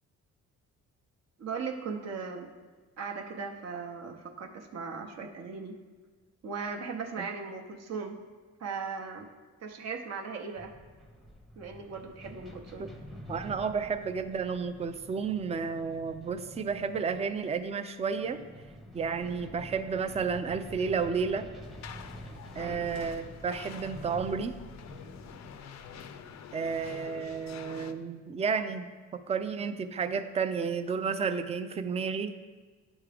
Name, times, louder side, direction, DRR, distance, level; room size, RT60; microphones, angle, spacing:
voice 1, 1.4-2.5 3.0-5.7 6.4-8.2 8.6-9.3 9.6-10.7 11.6-12.9 22.6-22.8, right 5 dB, 60° right, 2 dB, 0.8 m, -38 dB
sound 1, 10.5-28.1, equal, ahead, 0.7 m, -48 dB
voice 2, 13.3-18.4 18.9-21.5 22.5-24.5 26.5-28.9 29.1-32.3, right 5 dB, 20° right, 10 dB, 0.4 m, -32 dB
sound 2, 21.6-27.9, left 8 dB, 65° left, 0.5 m, -47 dB
9.8 x 3.6 x 3.4 m, 1.4 s
cardioid pair, 90°, 30 cm